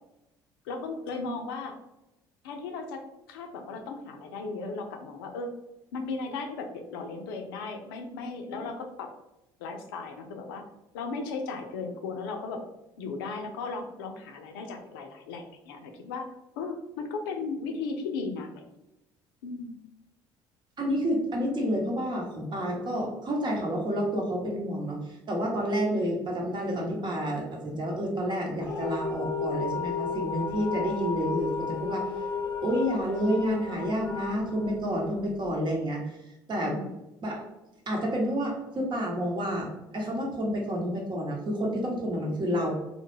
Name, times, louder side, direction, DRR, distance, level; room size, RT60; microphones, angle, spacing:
voice 1, 0.7-1.8 2.4-5.5 5.9-9.1 9.6-10.7 10.9-12.6 13.0-16.3 16.6-18.6 19.4-19.8 36.6-36.9, left 4 dB, 85° left, 4 dB, 0.4 m, -36 dB
voice 2, 20.8-25.0 25.3-32.1 32.6-36.1 36.5-36.8 37.2-37.5 37.9-42.7, equal, 40° right, -1 dB, 0.9 m, -29 dB
sound 1, 28.6-35.5, left 5 dB, 30° left, 0.6 m, -33 dB
2.2 x 2.0 x 3.1 m, 0.93 s
hypercardioid pair, 60°, 12 cm